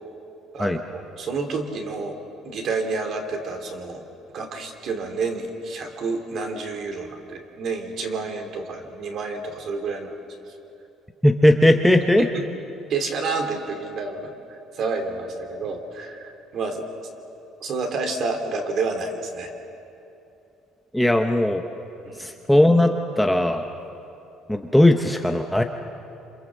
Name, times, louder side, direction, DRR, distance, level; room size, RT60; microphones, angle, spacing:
voice 1, 0.5-2.2 2.4-4.0 4.3-10.1 12.0-12.5 12.9-16.8 17.6-19.5 22.0-22.3, right 4 dB, 45° right, 5 dB, 2.9 m, -29 dB
voice 2, 11.2-12.3 20.9-21.6 22.2-23.6 24.5-25.6, left 1 dB, ahead, 4 dB, 0.8 m, -18 dB
27.5 x 27.0 x 7.5 m, 2.8 s
cardioid pair, 170°, 0 cm